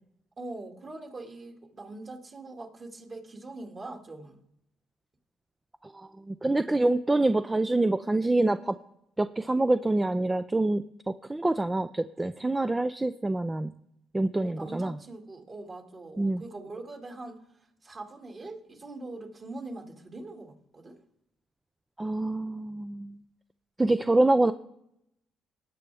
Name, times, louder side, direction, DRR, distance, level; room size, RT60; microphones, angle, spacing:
voice 1, 0.4-4.4 14.4-21.0, right 2 dB, 40° right, 2 dB, 2.4 m, -42 dB
voice 2, 5.8-8.8 9.2-13.7 14.1-14.9 16.2-16.4 22.0-23.2 23.8-24.5, right 2 dB, 15° right, 11 dB, 0.4 m, -26 dB
18.5 x 7.4 x 3.5 m, 0.79 s
supercardioid pair, 70°, 0 cm